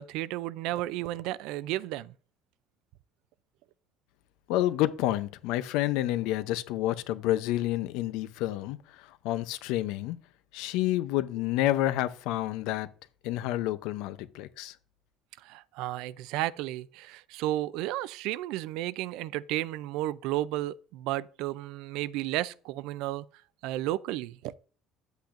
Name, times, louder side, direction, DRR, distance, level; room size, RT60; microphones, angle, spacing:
voice 1, 0.0-2.1 15.4-23.2 23.6-24.5, right 15 dB, 80° right, 0.4 m, -33 dB
voice 2, 4.5-8.8 9.2-10.2 10.5-12.9 13.2-14.7, left 14 dB, 85° left, 0.6 m, -29 dB
10.0 x 8.2 x 2.5 m
cardioid pair, 155°, 0 cm